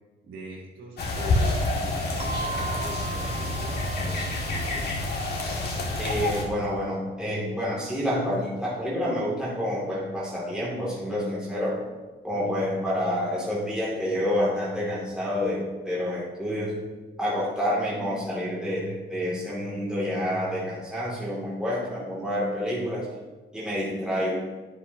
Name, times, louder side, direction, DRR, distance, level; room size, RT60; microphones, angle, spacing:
voice 1, 0.2-4.9, right 1 dB, 85° right, -5 dB, 3.3 m, -42 dB
sound 1, 1.0-6.4, left 2 dB, 55° left, 2.0 m, -28 dB
sound 2, 2.2-6.6, right 4 dB, 30° right, 1.9 m, -38 dB
voice 2, 6.0-11.8 12.2-16.8 17.2-23.0 23.5-24.5, equal, 5° right, -7 dB, 2.5 m, -28 dB
10.5 x 9.3 x 2.8 m, 1.3 s
cardioid pair, 90°, 20 cm